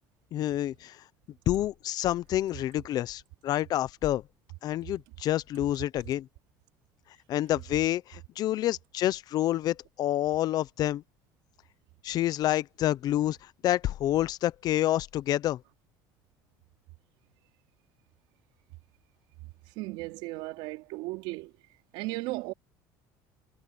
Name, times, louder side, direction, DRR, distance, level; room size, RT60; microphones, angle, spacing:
voice 1, 0.3-1.0 1.5-4.2 4.6-6.3 7.3-11.0 12.0-13.4 13.6-15.6, left 13 dB, 50° left, 0.7 m, -28 dB
voice 2, 19.8-21.5 21.9-22.5, right 21 dB, 75° right, 3.9 m, -35 dB
cardioid pair, 125°, 9 cm